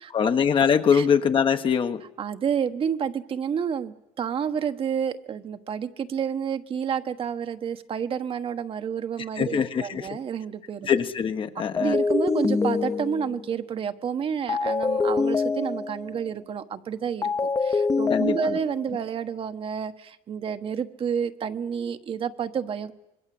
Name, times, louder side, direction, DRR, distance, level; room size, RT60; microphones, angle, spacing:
voice 1, 0.1-2.0 9.4-10.2 10.9-12.0 18.1-18.6, left 7 dB, 40° left, 8 dB, 1.3 m, -23 dB
voice 2, 2.2-10.9 11.8-17.3 17.6-22.9, right 7 dB, 45° right, 8 dB, 1.3 m, -29 dB
sound 1, 11.8-13.5 14.5-16.2 17.2-18.9, left 4 dB, 25° left, 1.1 m, -25 dB
25.5 x 21.5 x 7.8 m, 0.91 s
cardioid pair, 115°, 13 cm